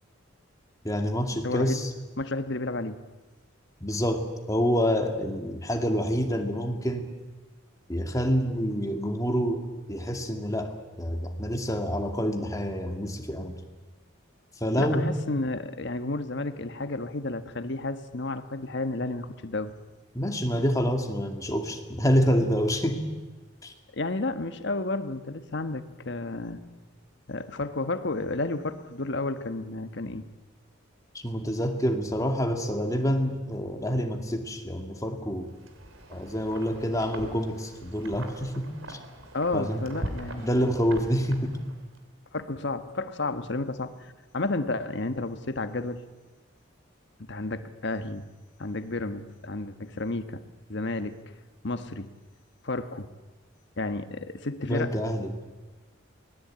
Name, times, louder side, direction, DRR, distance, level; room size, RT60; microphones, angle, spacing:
voice 1, 0.8-1.9 3.8-7.1 7.9-13.6 14.6-15.1 20.1-23.0 23.6-23.7 31.1-35.5 36.1-39.0 39.5-39.8 40.4-41.6 54.6-55.3, equal, 15° left, 4 dB, 2.3 m, -27 dB
voice 2, 1.4-1.8 2.2-3.0 14.8-19.7 23.9-26.6 27.3-30.3 39.3-40.5 42.3-46.0 47.2-48.2 48.6-51.3 51.6-52.1 52.6-53.1 53.8-55.0, left 2 dB, 60° left, 10 dB, 1.3 m, -32 dB
Wind, 35.5-42.0, right 1 dB, 85° right, 3.3 m, -42 dB
24.0 x 19.5 x 8.8 m, 1.3 s
head